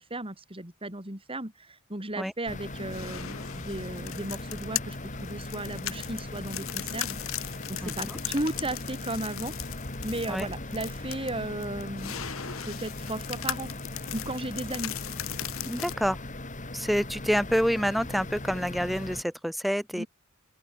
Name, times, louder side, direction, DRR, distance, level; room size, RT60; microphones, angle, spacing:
voice 1, 0.0-9.5 10.0-12.2 12.6-13.7 14.1-15.0 19.9-20.1, right 1 dB, 25° right, 5.0 m, -35 dB
sound 1, 2.5-19.2, left 1 dB, 35° left, 3.7 m, -39 dB
sound 2, 2.7-15.9, left 11 dB, 75° left, 1.9 m, -38 dB
voice 2, 7.8-8.2 10.3-10.5 15.6-16.2 16.7-20.0, equal, ahead, 1.6 m, -28 dB
open air
head